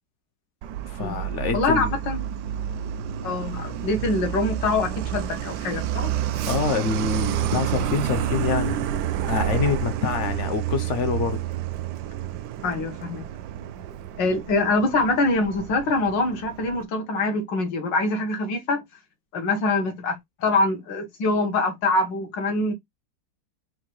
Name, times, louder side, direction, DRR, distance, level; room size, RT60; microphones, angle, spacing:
Truck, 0.6-16.8, right 11 dB, 75° right, 1.1 m, -29 dB
voice 1, 0.9-2.0 6.5-8.8 9.2-11.4, left 6 dB, 60° left, 0.8 m, -26 dB
voice 2, 1.5-2.2 3.2-6.1 12.6-13.3 14.2-18.8 19.3-22.7, left 2 dB, 80° left, 1.8 m, -24 dB
4.6 x 2.2 x 4.5 m
omnidirectional pair, 1.9 m